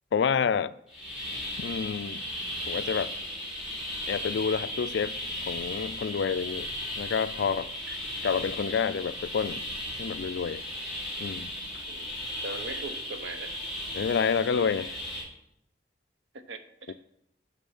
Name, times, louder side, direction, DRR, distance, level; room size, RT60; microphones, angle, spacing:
voice 1, 0.1-0.7 1.6-2.2 2.7-3.1 4.1-5.2 5.5-6.7 7.0-7.7 8.2-9.6 10.0-10.6 11.2-11.8 13.9-15.0 16.9-17.0, left 6 dB, 70° left, 0.3 m, -28 dB
sound 1, 0.9-15.2, left 1 dB, 5° right, 1.9 m, -36 dB
voice 2, 12.4-13.5 16.3-16.9, right 3 dB, 80° right, 0.8 m, -40 dB
7.4 x 6.0 x 5.5 m
head